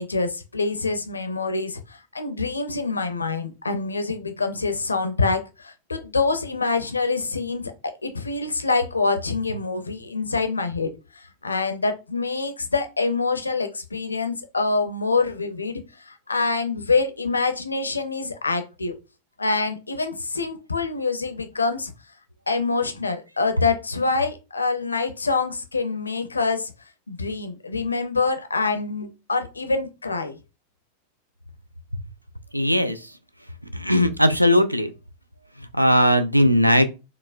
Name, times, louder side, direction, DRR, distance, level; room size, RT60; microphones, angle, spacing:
voice 1, 0.0-19.0 19.4-21.9 22.5-26.7 27.1-30.4, left 4 dB, 80° left, 0.5 m, -26 dB
voice 2, 32.5-33.0 33.7-34.9 35.7-36.9, equal, 90° right, 0.3 m, -18 dB
4.2 x 2.1 x 2.4 m
figure-of-eight pair, 90°, 0 cm